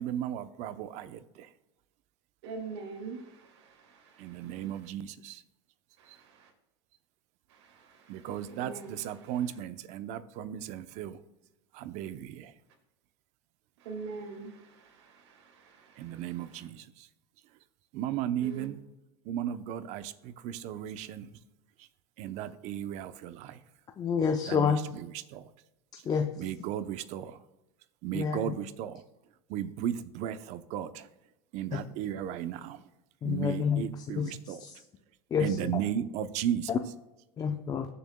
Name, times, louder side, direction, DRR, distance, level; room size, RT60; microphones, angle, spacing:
voice 1, 0.0-1.5 4.2-5.4 8.1-11.2 11.7-12.5 16.0-17.1 17.9-18.8 19.3-21.3 22.2-23.6 24.5-25.4 26.4-27.4 28.0-29.0 29.5-31.1 31.5-32.8 33.2-34.6 35.4-36.8, right 10 dB, 55° right, 12 dB, 0.8 m, -35 dB
voice 2, 2.4-4.8 6.0-6.5 7.5-9.4 13.8-16.7 18.4-18.7, right 4 dB, 85° right, 1 dB, 2.2 m, -45 dB
voice 3, 24.0-24.8 26.1-26.3 28.1-28.5 31.7-31.8 33.2-33.8 34.2-34.8 35.3-35.7 36.7-36.8 37.4-37.9, left 7 dB, 25° left, 6 dB, 0.6 m, -28 dB
20.0 x 7.0 x 2.3 m, 0.95 s
supercardioid pair, 120°, 14 cm